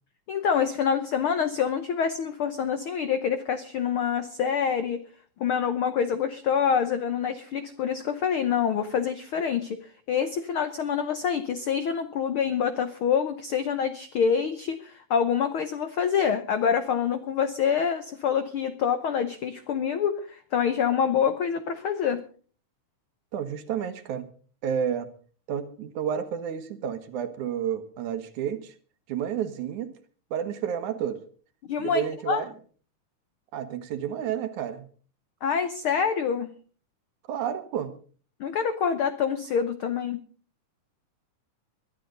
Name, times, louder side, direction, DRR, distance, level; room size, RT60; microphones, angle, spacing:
voice 1, 0.3-5.0 5.4-9.8 10.1-22.2 31.7-32.4 35.4-36.5 38.4-40.2, left 7 dB, 90° left, 11 dB, 1.1 m, -26 dB
voice 2, 23.3-24.3 24.6-25.1 25.5-28.7 29.1-29.9 30.3-31.2 31.8-32.5 33.5-34.8 37.3-37.9, right 8 dB, 70° right, 11 dB, 2.6 m, -30 dB
22.0 x 12.0 x 3.9 m, 0.41 s
omnidirectional pair, 3.7 m